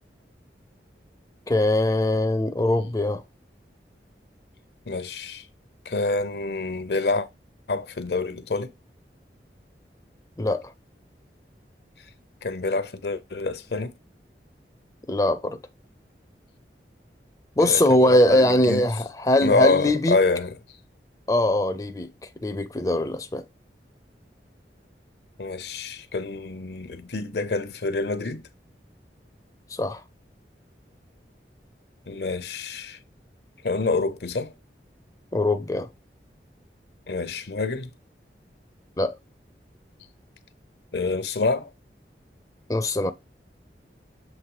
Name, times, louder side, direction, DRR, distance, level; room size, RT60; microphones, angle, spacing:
voice 1, 1.5-3.2 10.4-10.7 15.1-15.6 17.6-20.2 21.3-22.1 22.4-23.4 29.7-30.0 35.3-35.9 39.0-39.2 42.7-43.1, left 1 dB, 20° left, 0.5 m, -22 dB
voice 2, 4.9-5.5 5.9-7.3 7.7-8.7 12.4-13.9 17.6-18.9 19.4-20.5 25.4-28.4 32.1-33.0 33.6-34.5 37.1-37.9 40.9-41.7, left 3 dB, 70° left, 0.7 m, -26 dB
7.4 x 3.1 x 4.7 m
head